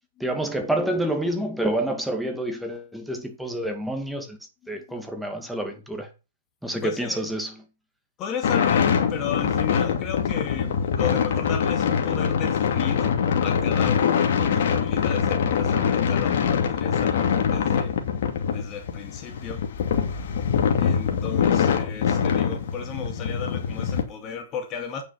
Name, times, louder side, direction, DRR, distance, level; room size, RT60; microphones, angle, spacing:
voice 1, 0.2-4.4 4.7-6.1 6.6-7.6, right 1 dB, ahead, 2.1 m, -28 dB
voice 2, 5.4-5.8 6.8-7.3 8.2-13.2 13.4-17.9 18.5-19.6 20.8-25.0, left 7 dB, 30° left, 2.2 m, -34 dB
sound 1, 8.4-24.0, left 7 dB, 60° left, 2.7 m, -23 dB
9.0 x 6.8 x 5.8 m
hypercardioid pair, 130°, 0 cm